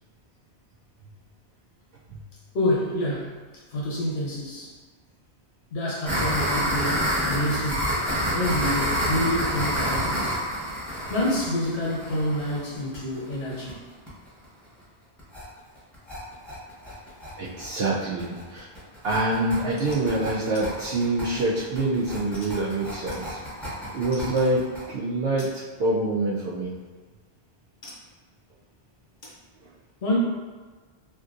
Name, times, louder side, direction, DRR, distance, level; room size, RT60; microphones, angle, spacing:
voice 1, 2.5-3.4 3.7-4.7 5.7-7.9 8.3-10.4 11.1-13.8 30.0-30.2, left 1 dB, 75° left, -5 dB, 1.1 m, -27 dB
sound 1, 6.1-13.7 14.1-14.2 14.4-14.5 14.8-14.9 15.2-15.4 15.8-24.8, equal, ahead, 0.9 m, -29 dB
voice 2, 17.4-18.7 19.0-26.7, right 2 dB, 65° right, -7 dB, 0.8 m, -26 dB
sound 2, 19.8-20.1 20.5-20.7 21.1-21.6 22.3-23.7 24.1-24.6 25.4-25.6 26.9-27.0 27.8-28.1 29.2-29.4, left 1 dB, 50° left, 0.7 m, -47 dB
3.4 x 2.6 x 2.5 m, 1.4 s
omnidirectional pair, 1.1 m